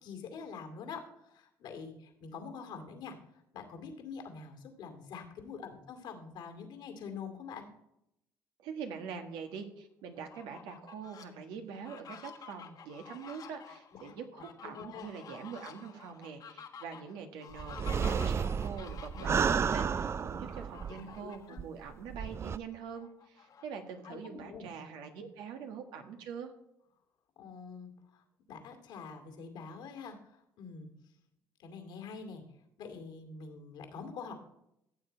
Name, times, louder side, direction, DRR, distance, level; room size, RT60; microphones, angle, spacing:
voice 1, 0.0-7.7 13.9-14.1 14.6-15.1 19.1-19.6 21.2-21.6 24.0-24.7 27.4-30.9 31.6-32.4 32.8-34.3, left 5 dB, 75° left, 5 dB, 2.3 m, -46 dB
voice 2, 8.6-26.5, right 6 dB, 80° right, 5 dB, 1.5 m, -44 dB
Fowl, 10.2-11.3 11.7-19.5 20.5-21.6 22.0-22.1 22.5-24.2, left 7 dB, 55° left, 1.5 m, -51 dB
sound 1, 17.6-21.2 21.6-21.7 22.1-22.6, right 6 dB, 35° right, 0.4 m, -32 dB
14.5 x 7.3 x 4.5 m, 0.82 s
supercardioid pair, 75°, 8 cm